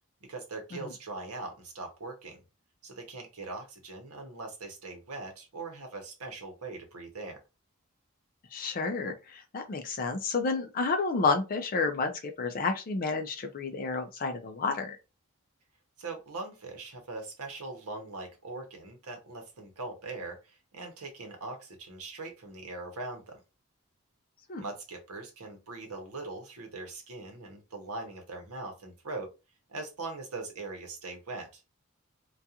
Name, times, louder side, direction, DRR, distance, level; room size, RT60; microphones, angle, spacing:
voice 1, 0.2-2.4 2.8-7.4 16.0-23.4 24.6-29.3 29.7-31.6, right 3 dB, 85° right, 0.9 m, -41 dB
voice 2, 8.5-15.0 24.5-24.6, left 4 dB, 40° left, 0.4 m, -30 dB
2.4 x 2.3 x 2.7 m
head